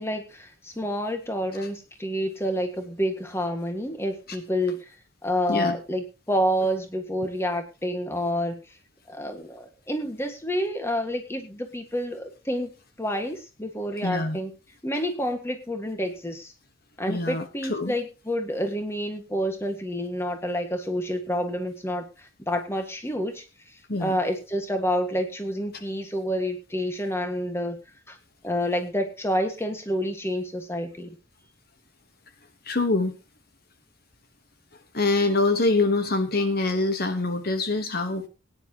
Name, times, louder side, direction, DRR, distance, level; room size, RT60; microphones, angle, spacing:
voice 1, 0.0-4.9 5.2-8.6 9.1-12.7 13.0-14.5 14.8-16.5 17.0-23.4 24.0-27.8 28.1-28.2 28.4-31.2, equal, 10° left, 6 dB, 1.7 m, -28 dB
voice 2, 14.0-14.4 17.1-17.9 23.9-24.2 32.6-33.1 34.9-38.3, left 2 dB, 50° left, 8 dB, 1.2 m, -24 dB
20.0 x 9.9 x 2.9 m, 0.30 s
head